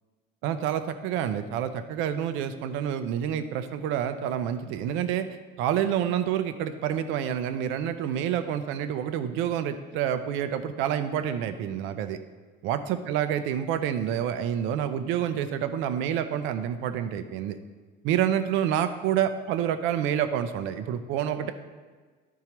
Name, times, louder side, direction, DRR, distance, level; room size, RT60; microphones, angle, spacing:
voice 1, 0.4-5.3 5.6-12.2 12.6-12.8 13.1-17.6 18.0-21.5, right 9 dB, 80° right, 10 dB, 0.5 m, -28 dB
12.5 x 4.6 x 3.0 m, 1.4 s
cardioid pair, 140°, 20 cm